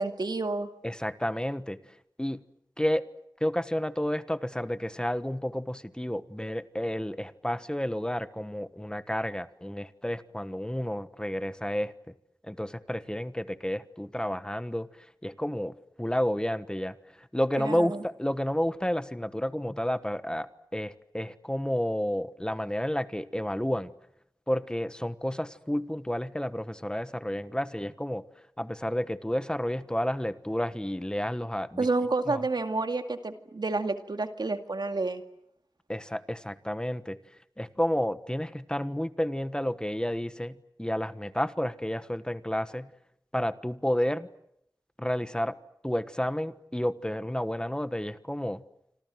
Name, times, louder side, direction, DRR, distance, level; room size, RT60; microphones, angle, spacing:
voice 1, 0.0-0.7 17.6-18.0 31.8-35.2, right 3 dB, 85° right, 7 dB, 2.2 m, -29 dB
voice 2, 0.8-1.8 2.2-2.4 2.8-3.1 3.4-11.9 12.4-14.9 15.2-23.9 24.5-28.2 28.6-31.9 32.3-32.4 35.9-37.2 37.6-42.9 43.3-44.3 45.0-45.6 45.8-48.6, equal, 10° left, 13 dB, 1.3 m, -31 dB
27.0 x 26.5 x 7.8 m, 0.78 s
wide cardioid pair, 45°, 7 cm